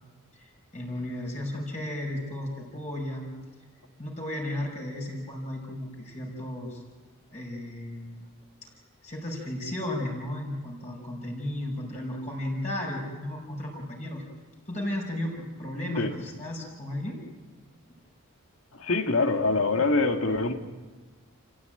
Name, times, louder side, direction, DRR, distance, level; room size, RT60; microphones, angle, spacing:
voice 1, 0.3-3.3 4.0-6.8 7.3-8.3 8.6-8.7 9.0-14.2 14.7-17.2, left 1 dB, 35° left, -2 dB, 5.8 m, -34 dB
voice 2, 18.7-20.6, left 3 dB, 75° left, 5 dB, 1.9 m, -24 dB
28.5 x 16.0 x 9.0 m, 1.3 s
head